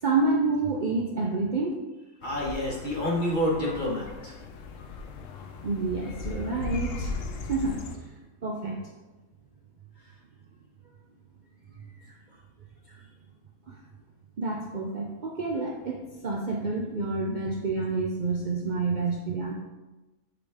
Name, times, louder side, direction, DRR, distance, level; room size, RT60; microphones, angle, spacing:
voice 1, 0.0-1.7 5.6-7.2 7.5-8.1 8.4-8.8 11.8-11.9 12.9-13.0 13.7-13.8 14.4-19.5, right 3 dB, 50° right, -1 dB, 0.6 m, -28 dB
sound 1, 2.2-8.0, left 3 dB, 70° left, 1.0 m, -37 dB
voice 2, 2.2-4.3, left 1 dB, 35° left, -4 dB, 1.6 m, -28 dB
6.9 x 5.1 x 3.5 m, 1.1 s
omnidirectional pair, 1.4 m